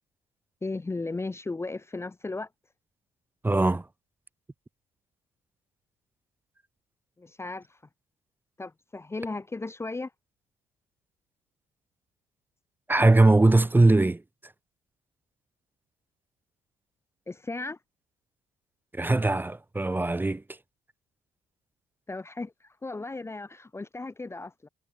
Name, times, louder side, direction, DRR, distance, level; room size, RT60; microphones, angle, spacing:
voice 1, 0.6-2.5 7.2-7.8 8.6-10.1 17.3-17.8 22.1-24.7, left 3 dB, 15° left, 0.9 m, -36 dB
voice 2, 3.4-3.8 12.9-14.2 18.9-20.4, right 2 dB, 10° right, 1.0 m, -21 dB
cardioid pair, 110°, 17 cm